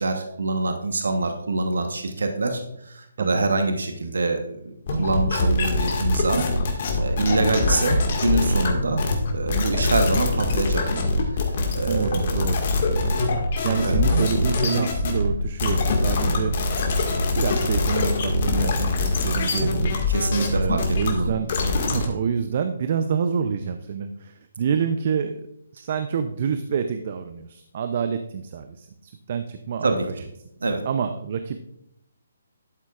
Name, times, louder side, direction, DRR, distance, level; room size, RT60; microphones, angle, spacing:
voice 1, 0.0-6.4 7.0-9.0 9.3-12.4 13.8-14.0 20.1-21.3 29.8-30.1 30.6-30.8, right 2 dB, 75° right, 5 dB, 1.1 m, -25 dB
sound 1, 4.9-22.1, left 2 dB, 50° left, 1.9 m, -23 dB
voice 2, 11.9-12.7 13.6-16.5 17.3-20.0 20.5-21.5 21.8-25.5 25.7-30.2 30.8-31.6, right 6 dB, 50° right, 8 dB, 0.6 m, -27 dB
12.0 x 8.2 x 2.5 m, 0.77 s
hypercardioid pair, 145°, 0 cm